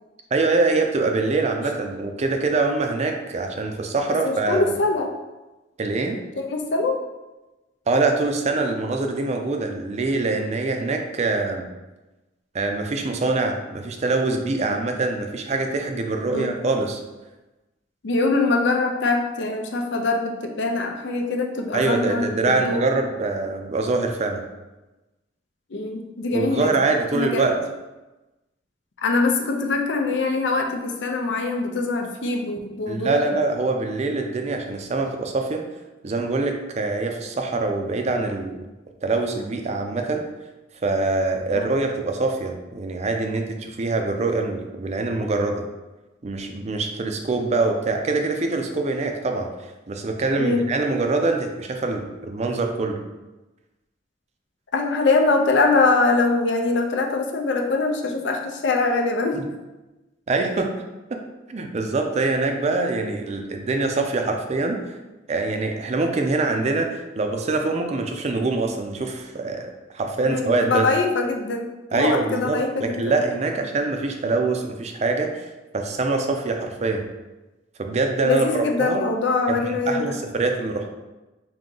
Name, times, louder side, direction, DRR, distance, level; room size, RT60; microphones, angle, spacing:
voice 1, 0.3-4.8 5.8-6.2 7.9-11.7 12.5-17.0 21.7-24.4 26.3-27.6 32.9-35.7 36.0-38.6 39.0-40.2 40.8-45.6 46.2-49.5 49.9-53.0 59.3-59.4 60.3-60.7 61.1-61.2 61.5-64.8 65.3-70.9 71.9-75.5 75.7-77.1 77.8-78.4 78.8-79.0 79.5-80.9, right 3 dB, 40° right, 4 dB, 0.4 m, -24 dB
voice 2, 4.2-5.1 6.4-7.0 16.3-16.5 18.0-22.8 25.7-26.7 27.1-27.5 29.0-33.4 41.5-41.7 50.4-50.6 54.7-59.4 70.2-73.2 78.2-80.2, left 3 dB, 80° left, 2 dB, 0.6 m, -23 dB
3.7 x 2.7 x 3.8 m, 1.1 s
head